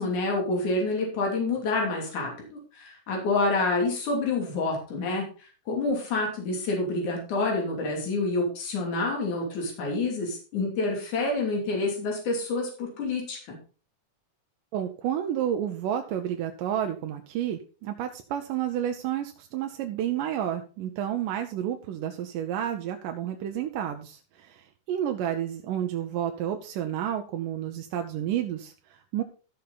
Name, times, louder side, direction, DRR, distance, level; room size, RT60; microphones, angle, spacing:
voice 1, 0.0-5.2 5.7-13.4, left 3 dB, 70° left, 0 dB, 4.4 m, -28 dB
voice 2, 14.7-29.2, right 10 dB, 90° right, 5 dB, 2.4 m, -30 dB
14.0 x 6.7 x 4.0 m, 0.37 s
omnidirectional pair, 3.7 m